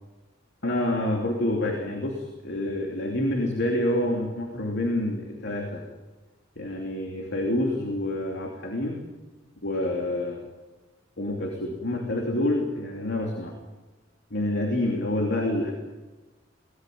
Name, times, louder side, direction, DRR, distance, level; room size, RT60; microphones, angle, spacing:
voice 1, 0.6-5.8 6.6-9.0 9.6-10.4 11.2-13.5 14.3-15.7, left 1 dB, 60° left, 1 dB, 2.9 m, -27 dB
23.5 x 18.5 x 9.4 m, 1.2 s
head